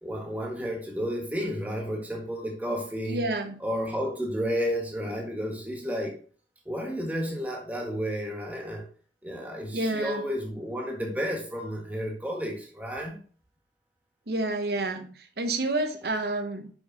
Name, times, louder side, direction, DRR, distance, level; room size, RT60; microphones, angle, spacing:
voice 1, 0.0-3.2 3.6-6.2 6.6-8.9 9.2-13.2, equal, 10° right, 1.5 m, -32 dB
voice 2, 3.1-3.6 9.7-10.2 14.3-16.7, right 2 dB, 65° right, 0.9 m, -29 dB
5.9 x 5.8 x 4.1 m
head